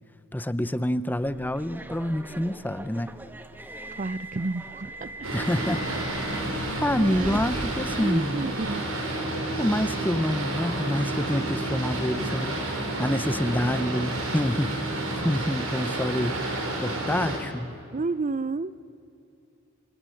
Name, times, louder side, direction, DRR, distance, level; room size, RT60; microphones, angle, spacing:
voice 1, 0.3-3.1 5.3-5.8 6.4-8.4 9.6-16.4 16.8-17.7, left 1 dB, 10° left, 14 dB, 0.7 m, -27 dB
Subway metro underground, 1.2-8.8, equal, 10° right, 1.3 m, -40 dB
voice 2, 4.0-5.1 7.0-7.4 8.0-8.8 17.9-18.7, right 3 dB, 35° right, 17 dB, 0.5 m, -30 dB
Boat Water vehicle, 5.2-17.4, right 2 dB, 85° right, 5.5 m, -30 dB
27.0 x 26.0 x 7.8 m, 2.7 s
head